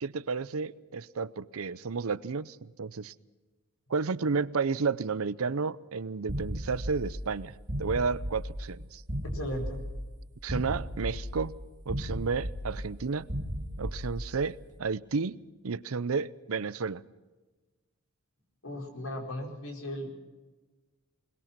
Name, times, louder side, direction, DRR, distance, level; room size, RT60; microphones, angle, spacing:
voice 1, 0.0-3.1 3.9-9.0 10.4-11.6 11.9-13.3 13.8-15.4 15.6-17.0, right 5 dB, 85° right, 0.6 m, -32 dB
sound 1, 6.3-14.5, equal, 35° right, 2.0 m, -36 dB
voice 2, 9.2-9.8 18.6-20.1, left 1 dB, 90° left, 4.9 m, -36 dB
22.0 x 20.5 x 6.0 m
head